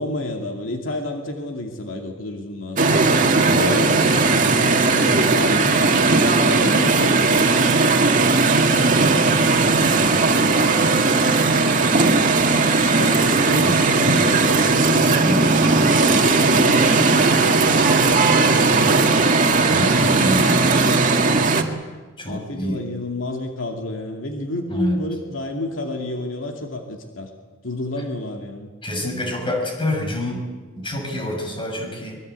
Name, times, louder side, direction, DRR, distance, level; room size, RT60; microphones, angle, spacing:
voice 1, 0.0-3.2 3.5-8.3 8.6-9.7 10.4-11.1 12.9-19.2 19.8-21.1 22.2-27.3 27.6-28.7, left 1 dB, 75° left, 2 dB, 2.5 m, -31 dB
sound 1, 2.8-21.6, right 3 dB, 40° right, 2.1 m, -17 dB
voice 2, 19.7-20.8 22.2-22.8 24.7-25.0 28.8-30.4 30.8-32.2, left 1 dB, 25° left, 2 dB, 6.8 m, -27 dB
24.5 x 22.5 x 8.4 m, 1.3 s
head